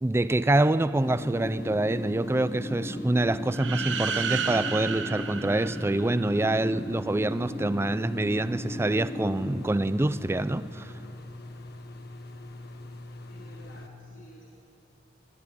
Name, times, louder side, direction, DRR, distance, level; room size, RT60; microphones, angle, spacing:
voice 1, 0.0-10.9, right 2 dB, 15° right, 0.4 m, -26 dB
sound 1, 0.9-13.9, left 1 dB, 60° left, 1.2 m, -43 dB
sound 2, 1.0-9.7, left 1 dB, 20° left, 1.3 m, -37 dB
sound 3, 3.5-6.4, right 7 dB, 75° right, 1.0 m, -32 dB
voice 2, 13.3-14.5, equal, 80° left, 3.3 m, -51 dB
23.5 x 12.0 x 9.7 m
head